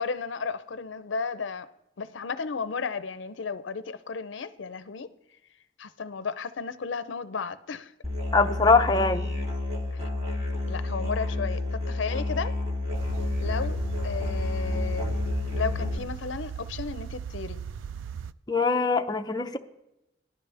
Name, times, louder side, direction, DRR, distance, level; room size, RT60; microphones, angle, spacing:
voice 1, 0.0-1.7 2.0-5.1 5.8-7.9 9.9-10.1 10.6-12.6 13.4-15.2 15.6-17.6, left 5 dB, 75° left, 0.5 m, -34 dB
Musical instrument, 8.0-16.0, left 2 dB, 35° right, 2.1 m, -30 dB
voice 2, 8.3-9.4 18.5-19.6, left 4 dB, 20° left, 0.6 m, -22 dB
sound 1, 12.9-18.3, right 7 dB, 85° right, 0.3 m, -38 dB
18.0 x 12.0 x 3.4 m
head